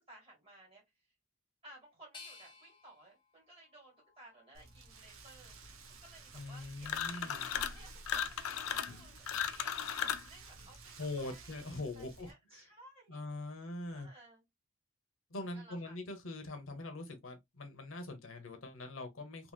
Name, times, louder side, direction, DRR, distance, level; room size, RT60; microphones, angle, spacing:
voice 1, 0.1-1.2 1.6-5.6 6.0-7.2 7.7-13.2 13.5-13.6 13.9-14.4 15.5-16.0, right 1 dB, 30° right, 1.8 m, -58 dB
sound 1, 2.1-5.1 5.6-6.4, left 4 dB, 25° left, 0.6 m, -58 dB
Rain, 4.5-12.3, right 3 dB, 80° right, 0.8 m, -54 dB
voice 2, 6.3-7.5 11.0-12.6 13.1-14.1 15.3-19.5, left 2 dB, 75° left, 0.8 m, -43 dB
sound 2, 6.8-7.8 8.1-10.3, left 8 dB, 90° left, 0.4 m, -36 dB
2.9 x 2.8 x 2.3 m
head